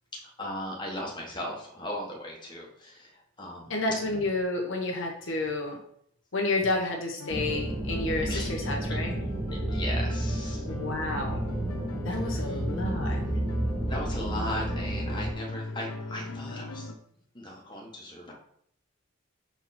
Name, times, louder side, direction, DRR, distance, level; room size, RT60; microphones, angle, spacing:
voice 1, 0.1-3.1 3.4-3.7 8.3-8.5 8.9-9.0 9.7-10.6 12.2-12.6 13.9-16.9 17.3-18.3, left 1 dB, 20° left, -2 dB, 1.5 m, -37 dB
voice 2, 3.7-5.8 6.3-9.1 10.7-11.4 12.0-13.2, left 2 dB, 60° left, 1 dB, 1.2 m, -30 dB
sound 1, 7.2-17.0, left 3 dB, 80° left, 0.7 m, -40 dB
sound 2, 7.3-15.3, right 1 dB, 15° right, 0.6 m, -31 dB
7.0 x 4.4 x 4.3 m, 0.68 s
head